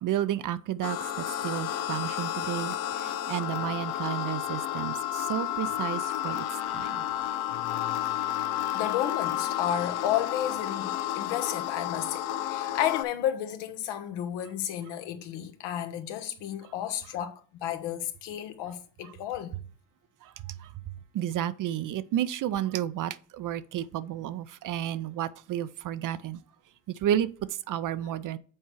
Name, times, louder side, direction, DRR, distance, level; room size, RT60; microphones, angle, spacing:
voice 1, 0.0-6.5 6.7-7.0 20.2-20.7 21.1-26.4 26.9-27.3 27.7-28.4, right 11 dB, 45° right, 0.6 m, -32 dB
sound 1, 0.8-13.0, left 12 dB, 90° left, 0.7 m, -31 dB
voice 2, 7.6-7.9 8.3-10.9 11.1-19.5, left 11 dB, 70° left, 1.2 m, -32 dB
7.5 x 4.5 x 4.6 m
supercardioid pair, 75°, 43 cm